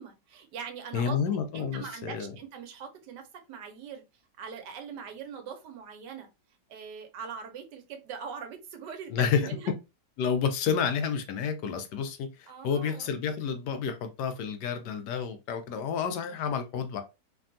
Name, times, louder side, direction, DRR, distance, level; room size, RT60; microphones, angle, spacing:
voice 1, 0.0-1.3 1.5-4.0 4.4-6.3 6.7-9.1 9.4-9.7 12.5-13.1, right 6 dB, 80° right, 1.3 m, -42 dB
voice 2, 0.9-2.3 9.1-9.5 10.2-17.0, left 6 dB, 80° left, 1.2 m, -30 dB
3.3 x 2.3 x 2.5 m
omnidirectional pair, 1.8 m